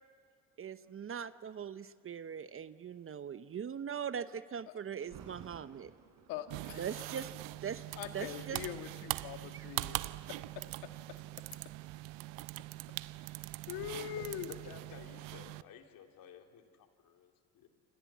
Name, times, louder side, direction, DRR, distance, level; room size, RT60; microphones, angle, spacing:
voice 1, 0.6-5.9 6.8-7.3 7.6-7.8 8.1-8.6 9.5-9.7, right 8 dB, 35° right, 13 dB, 0.9 m, -41 dB
Thunder, 5.0-10.0 10.6-10.9 11.5-14.3 14.6-14.7, right 7 dB, 60° right, 4.1 m, -58 dB
voice 2, 6.3-7.0 8.0-10.0 13.7-14.5, left 11 dB, 80° left, 7 dB, 1.8 m, -42 dB
sound 1, 6.5-7.4 8.4-8.6 9.9-10.1 11.2-11.8, left 8 dB, 40° left, 0.8 m, -56 dB
sound 2, 6.5-15.6, right 19 dB, 85° right, 0.7 m, -42 dB
voice 3, 14.1-17.7, left 7 dB, 65° left, 4 dB, 2.8 m, -54 dB
28.0 x 27.0 x 7.4 m, 2.2 s
supercardioid pair, 75°, 36 cm